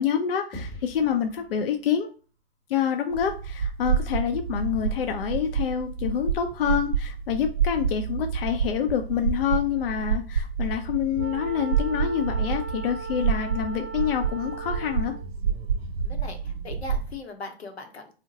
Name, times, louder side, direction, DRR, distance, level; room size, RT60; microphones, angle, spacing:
voice 1, 0.0-2.1 2.7-15.1, left 8 dB, 65° left, 5 dB, 0.5 m, -27 dB
sound 1, 0.5-3.1, equal, 15° left, 0.9 m, -44 dB
sound 2, 3.1-17.1, right 6 dB, 75° right, 0.5 m, -29 dB
Wind instrument woodwind instrument, 11.2-15.3, right 6 dB, 35° right, 0.6 m, -38 dB
voice 2, 16.0-18.1, left 3 dB, 90° left, 5 dB, 0.8 m, -39 dB
2.7 x 2.1 x 3.8 m, 0.38 s
figure-of-eight pair, 115°, 31 cm